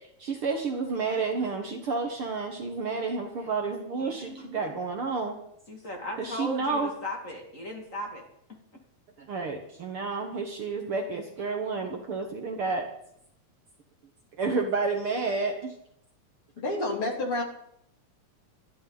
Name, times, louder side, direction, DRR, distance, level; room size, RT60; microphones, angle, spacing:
voice 1, 0.2-5.4 6.2-6.9 9.3-12.9 14.4-15.7, right 4 dB, 55° right, 4 dB, 2.0 m, -30 dB
voice 2, 4.0-4.6 5.7-8.3, left 1 dB, 25° left, 1 dB, 2.5 m, -37 dB
voice 3, 16.6-17.4, left 2 dB, 45° left, 1 dB, 3.8 m, -29 dB
25.5 x 11.5 x 4.0 m, 0.74 s
omnidirectional pair, 3.4 m